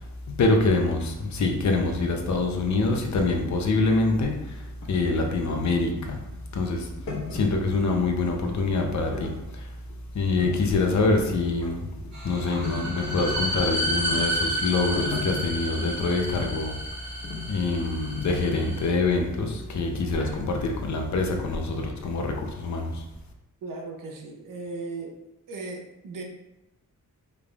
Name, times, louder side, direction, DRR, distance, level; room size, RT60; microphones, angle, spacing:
voice 1, 0.3-4.6 4.9-6.2 6.5-6.9 7.3-9.7 10.1-11.8 12.2-16.8 17.5-23.0, left 3 dB, 60° left, 2 dB, 0.7 m, -25 dB
sound 1, 4.1-8.0 8.2-8.8 9.1-10.1 10.4-10.6 10.8-14.3 14.7-15.8 16.4-16.6 17.2-18.4 19.0-19.1 19.7-20.3 21.2-21.4 21.7-21.8 22.0-22.1 22.5-22.7, left 4 dB, 80° left, 1.3 m, -37 dB
sound 2, 12.1-18.9, equal, 60° right, 1.4 m, -31 dB
voice 2, 23.6-25.2 25.5-26.2, right 3 dB, 75° right, 1 dB, 0.8 m, -37 dB
5.0 x 3.5 x 2.4 m, 0.94 s
wide cardioid pair, 135°, 32 cm